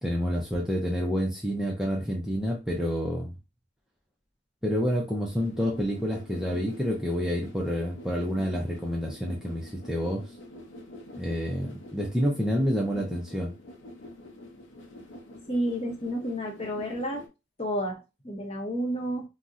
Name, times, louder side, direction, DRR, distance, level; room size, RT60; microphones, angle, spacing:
voice 1, 0.0-3.3 4.6-10.3 11.1-13.5, equal, 5° right, 0.4 m, -28 dB
sound 1, 5.3-17.3, left 1 dB, 85° left, 0.6 m, -46 dB
voice 2, 15.5-17.2 17.6-19.2, equal, 30° left, 0.7 m, -31 dB
2.6 x 2.0 x 3.5 m
head